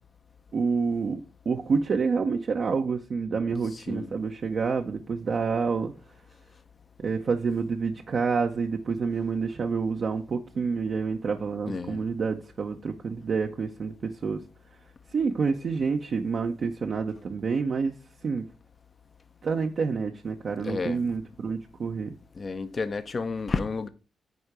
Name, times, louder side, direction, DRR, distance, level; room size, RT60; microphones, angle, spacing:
voice 1, 0.5-5.9 7.0-14.4 15.1-18.0 18.2-18.5 19.4-22.1, right 5 dB, 60° right, 0.8 m, -28 dB
voice 2, 3.7-4.1 11.7-12.1 20.6-21.1 22.4-23.9, left 4 dB, 45° left, 0.8 m, -31 dB
9.5 x 4.4 x 4.9 m
hypercardioid pair, 40°, 0 cm